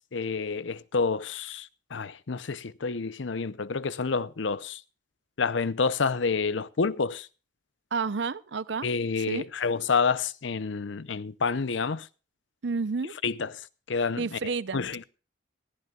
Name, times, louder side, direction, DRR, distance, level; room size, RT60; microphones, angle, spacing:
voice 1, 0.1-4.8 5.4-7.3 8.8-12.1 13.2-13.6 13.9-14.4 14.7-15.0, left 5 dB, 75° left, 0.6 m, -28 dB
voice 2, 7.9-8.9 9.3-9.5 12.6-13.1 14.2-14.9, right 4 dB, 70° right, 0.6 m, -30 dB
20.5 x 15.0 x 2.4 m
head